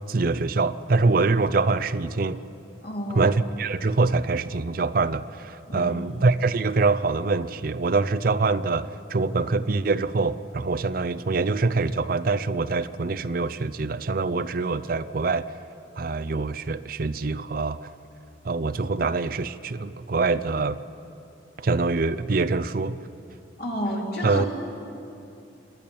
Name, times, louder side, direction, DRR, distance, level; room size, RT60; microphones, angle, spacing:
voice 1, 0.1-2.4 3.1-15.5 16.0-17.9 18.4-20.8 21.6-23.0 24.2-24.5, right 3 dB, 50° right, 14 dB, 0.5 m, -24 dB
voice 2, 2.8-3.3 5.7-6.0 23.6-24.5, equal, 55° left, -1 dB, 3.1 m, -30 dB
28.0 x 11.0 x 8.7 m, 2.7 s
head